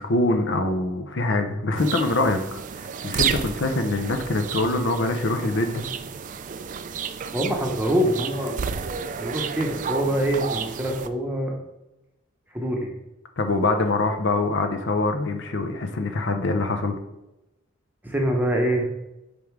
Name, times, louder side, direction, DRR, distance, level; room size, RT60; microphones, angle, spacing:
voice 1, 0.0-2.4 2.7-5.9 13.4-16.9, left 2 dB, 60° left, 6 dB, 0.7 m, -24 dB
sound 1, 1.8-11.1, right 7 dB, 40° right, 0.3 m, -31 dB
voice 2, 7.3-8.7 9.2-11.5 12.5-12.9 18.0-18.9, right 1 dB, 10° right, 1 dB, 0.9 m, -24 dB
5.3 x 5.1 x 4.6 m, 0.94 s
head